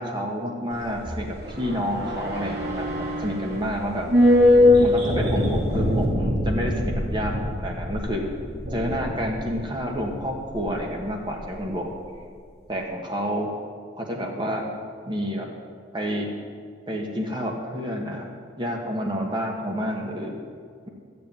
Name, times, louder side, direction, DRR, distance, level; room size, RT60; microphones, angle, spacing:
voice 1, 0.0-4.1 4.8-8.3 8.7-11.9 12.7-13.5 14.0-14.6 15.1-15.5 15.9-16.3 16.9-18.3 18.6-20.3, equal, 25° right, 0 dB, 1.6 m, -29 dB
sound 1, 0.7-11.2 11.4-11.5, left 1 dB, 55° right, 3.2 m, -23 dB
14.0 x 6.9 x 9.1 m, 2.1 s
head